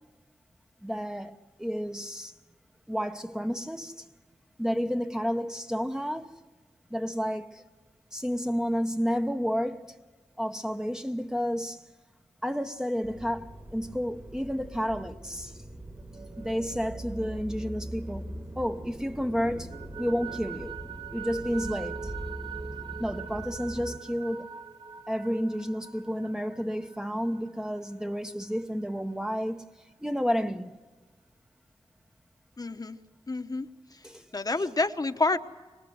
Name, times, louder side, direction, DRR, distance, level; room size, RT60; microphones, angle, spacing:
voice 1, 0.8-2.3 2.9-4.1 4.6-6.3 6.9-7.6 8.1-9.9 10.4-11.8 12.4-15.6 16.4-19.7 20.0-20.8 21.1-22.1 23.0-24.5 25.1-29.6 30.0-30.7 34.0-34.2 34.6-34.7, equal, 5° right, 0.9 m, -31 dB
sound 1, 13.0-24.0, right 1 dB, 30° right, 2.0 m, -42 dB
sound 2, 16.0-18.8 19.2-28.6, right 8 dB, 45° right, 0.8 m, -44 dB
voice 2, 32.6-33.0 33.3-34.1 34.3-35.4, left 3 dB, 35° left, 1.1 m, -29 dB
25.5 x 19.5 x 7.8 m
wide cardioid pair, 85°, 11 cm